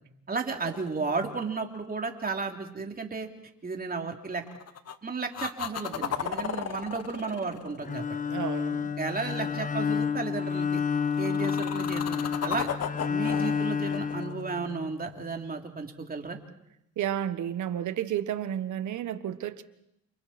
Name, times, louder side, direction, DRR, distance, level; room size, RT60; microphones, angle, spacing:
voice 1, 0.3-3.3 3.6-4.4 5.0-8.0 9.0-10.8 11.2-12.7 13.1-16.4, right 4 dB, 30° right, 3.2 m, -33 dB
sound 1, 0.5-1.8 4.4-5.0 5.3-8.6 10.9-15.2 19.0-19.1, left 8 dB, 55° left, 1.6 m, -35 dB
Bowed string instrument, 7.8-15.0, left 6 dB, 25° left, 1.5 m, -30 dB
voice 2, 8.3-8.9 17.0-19.6, right 10 dB, 75° right, 1.5 m, -32 dB
29.5 x 28.5 x 4.4 m
cardioid pair, 90°, 30 cm